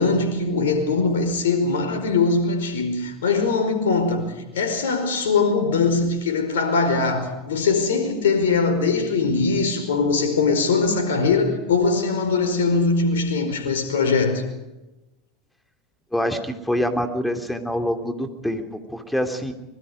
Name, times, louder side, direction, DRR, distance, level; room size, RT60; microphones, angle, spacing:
voice 1, 0.0-14.4, left 4 dB, 70° left, 5.0 m, -21 dB
voice 2, 16.1-19.5, equal, 5° left, 3.2 m, -25 dB
25.5 x 22.0 x 5.2 m
figure-of-eight pair, 80°, 0 cm